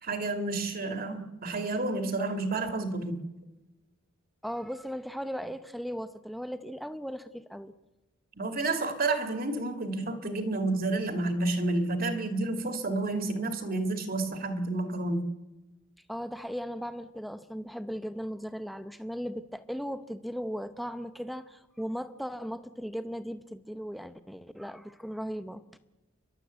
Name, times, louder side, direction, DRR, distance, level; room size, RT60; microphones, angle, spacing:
voice 1, 0.0-3.2 8.4-15.2, right 2 dB, 45° right, 7 dB, 2.0 m, -30 dB
voice 2, 4.4-7.7 16.1-25.6, equal, ahead, 10 dB, 0.8 m, -37 dB
30.0 x 12.0 x 8.0 m, 1.0 s
head